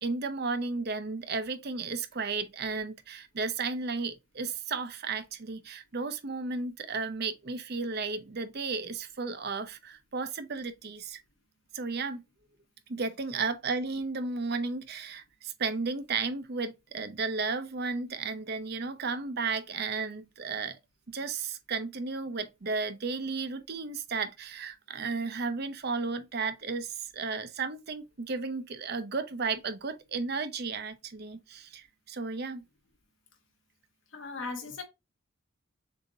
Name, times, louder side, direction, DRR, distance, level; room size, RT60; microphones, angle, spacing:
voice 1, 0.0-11.2 11.7-12.2 12.9-20.8 21.1-32.6, right 4 dB, 50° right, 0.6 m, -34 dB
voice 2, 34.1-34.8, left 4 dB, 60° left, 1.2 m, -37 dB
6.8 x 2.7 x 2.7 m
head